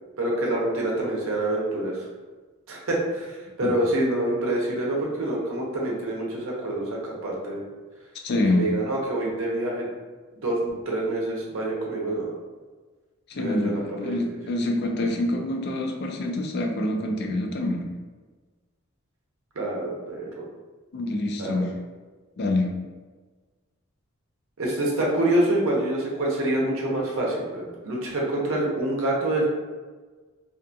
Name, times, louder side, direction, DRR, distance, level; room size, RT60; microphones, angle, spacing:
voice 1, 0.2-2.1 2.7-7.6 8.5-9.9 10.4-12.3 13.4-14.4 19.6-20.4 21.4-21.7 24.6-29.5, right 1 dB, 75° right, -3 dB, 0.7 m, -26 dB
voice 2, 8.2-8.7 13.3-17.9 20.9-21.7 22.4-22.7, left 1 dB, 50° left, 2 dB, 0.4 m, -26 dB
2.5 x 2.3 x 2.6 m, 1.3 s
head